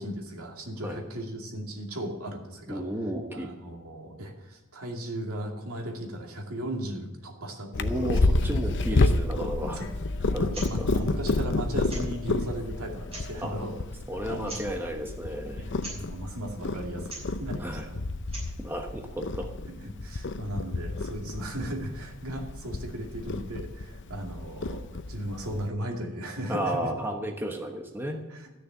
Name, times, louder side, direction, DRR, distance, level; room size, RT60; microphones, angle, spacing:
voice 1, 0.0-2.8 3.3-8.1 9.7-9.9 10.3-13.7 14.3-14.7 15.5-18.0 19.7-26.9 28.3-28.5, right 1 dB, 75° right, 2 dB, 2.4 m, -36 dB
voice 2, 2.7-3.5 7.8-9.8 10.3-10.9 13.4-13.5 14.1-15.7 17.6-17.9 18.6-19.5 26.5-28.2, equal, 10° right, 2 dB, 1.1 m, -33 dB
Purr, 7.7-25.7, left 2 dB, 55° left, 0.7 m, -30 dB
sound 1, 10.4-10.7 11.0-11.1 11.9-12.2 13.0-13.5 14.4-14.8 15.8-16.0 17.0-17.3 18.1-18.6, right 2 dB, 25° right, 6.1 m, -41 dB
14.0 x 6.7 x 8.9 m, 1.1 s
head